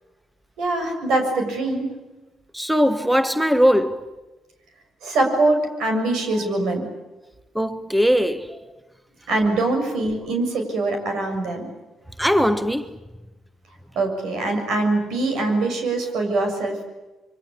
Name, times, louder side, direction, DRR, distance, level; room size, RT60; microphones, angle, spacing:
voice 1, 0.6-1.9 5.0-6.8 9.3-11.7 14.0-16.9, right 2 dB, 80° right, 7.0 m, -23 dB
voice 2, 2.5-4.1 7.5-8.6 12.2-13.0, equal, 5° right, 1.2 m, -20 dB
26.0 x 24.0 x 8.6 m
cardioid pair, 90°, 0 cm